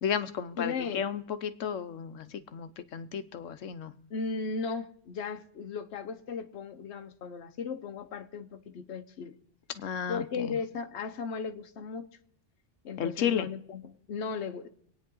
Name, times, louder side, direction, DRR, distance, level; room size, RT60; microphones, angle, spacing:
voice 1, 0.0-2.3 2.5-3.9 9.8-10.6 13.0-13.5, left 8 dB, 85° left, 1.2 m, -33 dB
voice 2, 0.6-1.1 4.1-9.4 10.1-12.1 12.8-14.7, left 5 dB, 65° left, 1.2 m, -36 dB
25.0 x 9.4 x 3.8 m
omnidirectional pair, 1.3 m